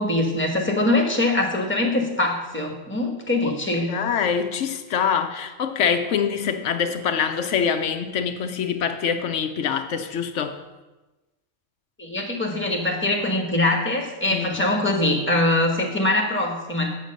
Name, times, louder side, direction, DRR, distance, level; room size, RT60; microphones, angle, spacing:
voice 1, 0.0-4.0 12.0-16.9, left 2 dB, 10° left, 1 dB, 1.5 m, -23 dB
voice 2, 3.9-10.6 14.3-14.5, left 7 dB, 85° left, 7 dB, 1.0 m, -24 dB
8.4 x 6.6 x 6.5 m, 1.1 s
omnidirectional pair, 1.2 m